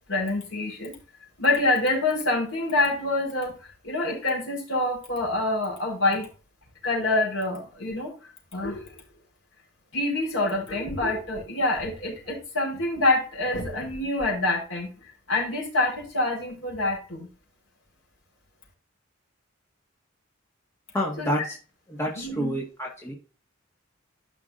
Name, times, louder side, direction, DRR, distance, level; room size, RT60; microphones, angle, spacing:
voice 1, 0.1-0.9 1.4-6.3 6.8-8.1 8.5-9.0 9.9-17.3 21.2-21.3 22.2-22.6, left 2 dB, 65° left, -2 dB, 4.5 m, -26 dB
voice 2, 20.9-21.5 21.9-23.1, equal, 15° left, -3 dB, 1.6 m, -28 dB
13.0 x 5.8 x 2.6 m, 0.35 s
head